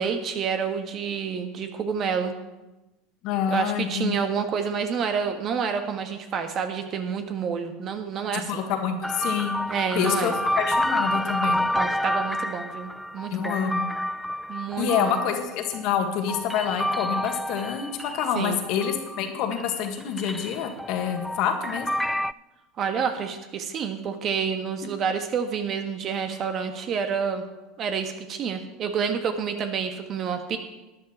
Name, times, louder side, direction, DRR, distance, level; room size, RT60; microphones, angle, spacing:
voice 1, 0.0-2.3 3.5-8.5 9.7-10.4 11.7-13.6 14.5-15.2 18.3-18.6 22.8-27.4 27.8-30.6, right 6 dB, 45° right, 7 dB, 1.5 m, -28 dB
voice 2, 3.2-4.2 8.3-9.6 9.9-11.6 13.3-13.9 14.8-21.9, left 8 dB, 60° left, 5 dB, 1.7 m, -27 dB
sound 1, 9.0-19.2 19.5-22.3, left 1 dB, ahead, 0.3 m, -29 dB
12.5 x 10.0 x 4.4 m, 1.1 s
hypercardioid pair, 85°, 0 cm